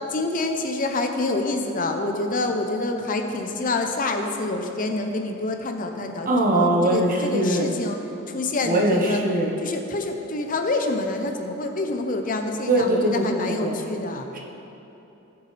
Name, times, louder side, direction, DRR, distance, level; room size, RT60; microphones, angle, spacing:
voice 1, 0.1-8.0 8.3-9.2 9.6-14.4, left 2 dB, 45° left, 4 dB, 0.7 m, -27 dB
voice 2, 6.2-7.7 8.6-9.5 12.7-13.8, right 1 dB, 45° right, -1 dB, 1.3 m, -21 dB
17.5 x 7.0 x 3.4 m, 2.9 s
head